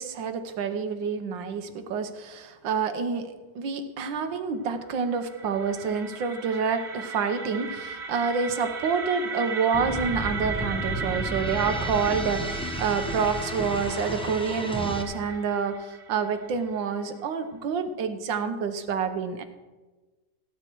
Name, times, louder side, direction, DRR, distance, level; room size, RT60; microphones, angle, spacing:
voice 1, 0.0-19.4, right 5 dB, 90° right, 8 dB, 1.7 m, -28 dB
sound 1, 4.8-16.8, right 4 dB, 40° right, 1.3 m, -37 dB
sound 2, 9.7-15.0, equal, 5° left, 0.4 m, -33 dB
16.5 x 8.5 x 4.6 m, 1.2 s
omnidirectional pair, 2.0 m